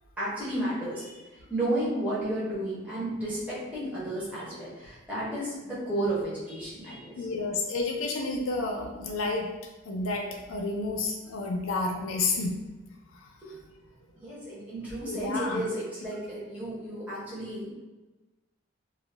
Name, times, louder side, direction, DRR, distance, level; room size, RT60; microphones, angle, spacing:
voice 1, 0.2-7.2 13.4-13.6 14.2-17.7, right 1 dB, 5° right, -10 dB, 0.7 m, -32 dB
voice 2, 7.2-9.5 9.9-12.5 13.1-13.2 15.1-15.7, left 3 dB, 85° left, 1 dB, 0.4 m, -30 dB
2.2 x 2.1 x 3.2 m, 1.1 s
head